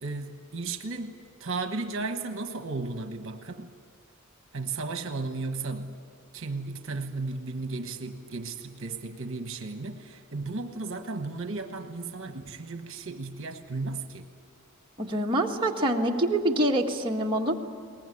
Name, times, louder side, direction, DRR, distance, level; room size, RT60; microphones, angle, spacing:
voice 1, 0.0-1.1 1.4-3.7 4.5-6.0 6.3-14.3, right 3 dB, 65° right, 7 dB, 1.2 m, -34 dB
voice 2, 15.0-17.5, right 1 dB, 25° right, -1 dB, 1.7 m, -25 dB
22.0 x 19.5 x 9.9 m, 2.1 s
head